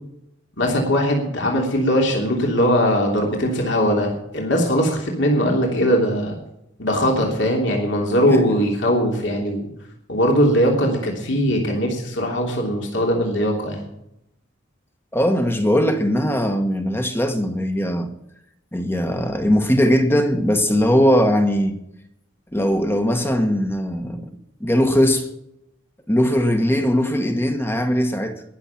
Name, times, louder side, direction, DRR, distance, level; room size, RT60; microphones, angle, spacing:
voice 1, 0.6-6.4 6.8-9.7 10.1-13.9, equal, 65° left, 3.1 m, -20 dB
voice 2, 15.1-18.1 18.7-21.8 22.5-24.3 24.6-25.3 26.1-28.4, equal, 10° left, 1.3 m, -20 dB
21.0 x 7.1 x 5.9 m
head